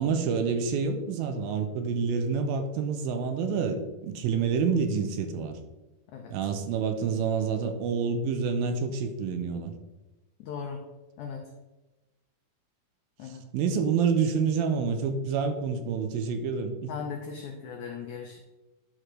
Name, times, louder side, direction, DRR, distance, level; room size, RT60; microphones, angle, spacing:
voice 1, 0.0-5.6 6.3-9.7 13.2-16.9, right 5 dB, 80° right, 7 dB, 2.5 m, -28 dB
voice 2, 10.4-10.8 11.2-11.5 13.2-13.4 16.9-18.4, left 6 dB, 85° left, 2 dB, 1.7 m, -38 dB
10.0 x 6.0 x 3.2 m, 1.1 s
omnidirectional pair, 4.3 m